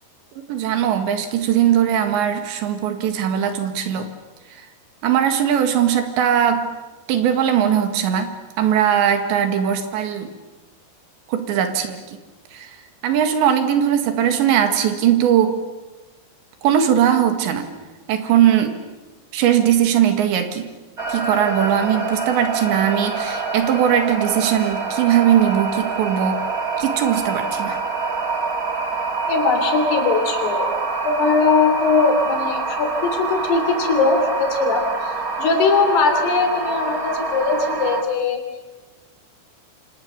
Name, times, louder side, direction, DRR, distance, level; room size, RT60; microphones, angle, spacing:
voice 1, 0.5-4.1 5.0-6.7 7.1-10.3 11.3-12.2 12.5-12.7 13.0-15.6 16.6-17.7 18.1-18.8 19.3-20.7 21.1-26.4 26.8-27.8, right 9 dB, 80° right, 7 dB, 4.1 m, -19 dB
sound 1, 21.0-38.0, right 4 dB, 65° right, 0.8 m, -26 dB
voice 2, 29.3-30.7 31.0-35.1 35.4-38.4, left 4 dB, 65° left, 5 dB, 5.2 m, -20 dB
27.5 x 26.0 x 6.9 m, 1.2 s
omnidirectional pair, 5.2 m